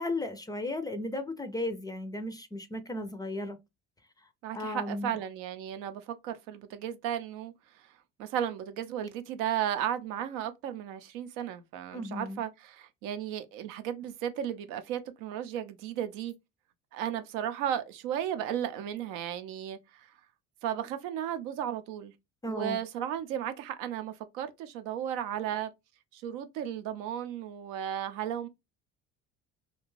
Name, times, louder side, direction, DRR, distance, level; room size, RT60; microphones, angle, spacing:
voice 1, 0.0-3.6 4.5-5.2 11.9-12.4 22.4-22.8, left 1 dB, 15° left, 0.4 m, -35 dB
voice 2, 4.4-16.3 16.9-20.1 20.6-22.1 22.4-25.7 26.1-28.5, right 10 dB, 85° right, 0.5 m, -35 dB
2.5 x 2.2 x 3.0 m
supercardioid pair, 95°, 31 cm